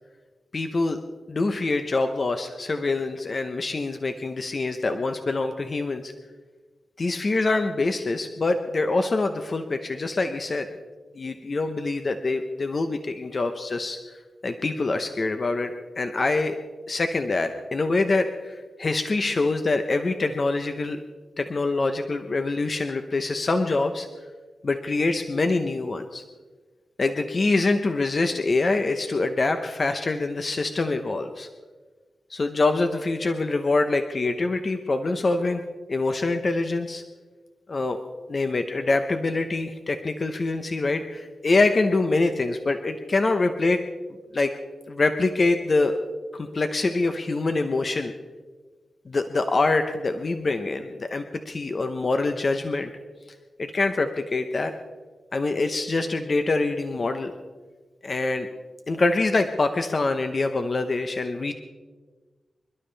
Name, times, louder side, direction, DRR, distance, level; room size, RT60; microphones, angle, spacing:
voice 1, 0.5-1.0 1.3-6.1 7.0-10.7 11.1-14.0 14.4-16.6 16.9-21.0 21.4-24.1 24.6-26.2 27.0-31.5 32.3-35.6 35.9-37.0 37.7-38.0 38.3-43.8 44.3-44.5 44.9-46.0 46.3-48.1 49.1-52.9 53.6-54.7 55.3-57.3 58.0-58.5 58.9-61.5, left 3 dB, 40° left, 7 dB, 0.9 m, -25 dB
26.5 x 12.0 x 3.4 m, 1.3 s
wide cardioid pair, 115°, 0 cm